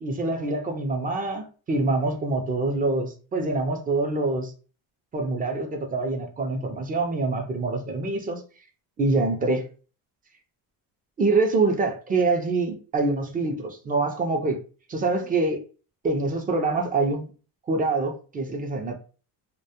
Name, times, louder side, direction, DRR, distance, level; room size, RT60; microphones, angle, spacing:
voice 1, 0.0-4.5 5.1-8.4 9.0-9.7 11.2-14.6 14.9-15.6 16.0-17.3 17.7-19.0, right 3 dB, 20° right, 0.3 m, -25 dB
2.2 x 2.0 x 2.7 m
cardioid pair, 120°, 46 cm